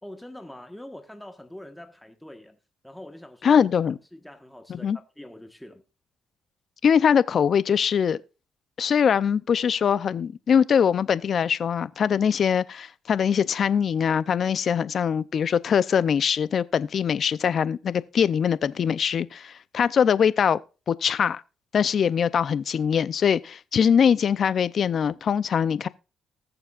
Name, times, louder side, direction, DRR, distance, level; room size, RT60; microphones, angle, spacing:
voice 1, 0.0-2.6 2.8-3.7 4.1-5.8, left 1 dB, 5° left, 1.3 m, -43 dB
voice 2, 3.4-4.0 4.7-5.0 6.8-8.2 8.8-20.6 20.9-21.4 21.7-25.9, left 7 dB, 55° left, 0.5 m, -22 dB
20.0 x 6.9 x 2.4 m
cardioid pair, 90°, 0 cm